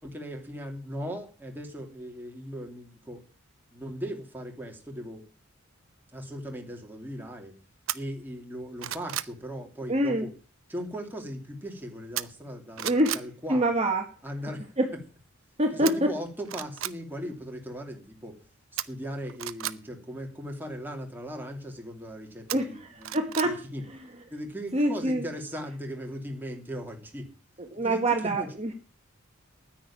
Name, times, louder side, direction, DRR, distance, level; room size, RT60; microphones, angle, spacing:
voice 1, 0.0-3.2 3.7-5.2 6.1-7.6 7.9-10.3 10.7-13.6 14.2-14.6 15.7-18.4 18.8-23.8 24.3-27.3 27.7-28.5, equal, 10° right, 1 dB, 2.8 m, -38 dB
sound 1, 7.9-8.0 8.5-9.4 12.2-12.5 12.8-13.3 15.9-16.0 16.4-17.0 18.8-19.8 22.5-23.5 23.9-24.0, right 13 dB, 65° right, 0.7 m, -33 dB
voice 2, 9.9-10.2 12.8-13.2 13.5-14.1 14.8-14.9 15.6-16.1 22.5-23.5 23.9-24.0 24.7-25.2 27.6-28.7, right 1 dB, 30° right, 3 dB, 1.6 m, -26 dB
10.0 x 9.4 x 8.6 m, 0.38 s
head